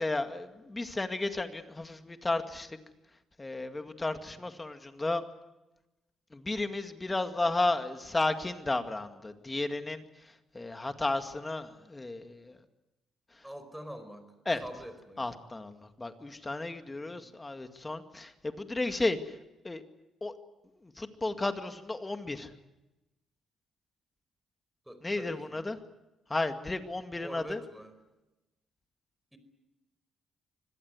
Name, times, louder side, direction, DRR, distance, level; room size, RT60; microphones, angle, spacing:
voice 1, 0.0-2.8 3.4-5.2 6.3-12.6 13.4-13.5 14.5-14.6 15.2-19.4 19.6-19.8 20.2-20.3 20.8-22.5 25.0-25.8 26.3-27.6, left 2 dB, 20° left, 7 dB, 2.1 m, -33 dB
voice 2, 13.4-14.2 14.6-15.2 17.0-17.3 24.9-25.7 27.2-27.9 29.3-29.4, equal, 5° right, 10 dB, 4.7 m, -45 dB
25.0 x 18.0 x 9.6 m, 1.0 s
cardioid pair, 90°, 0 cm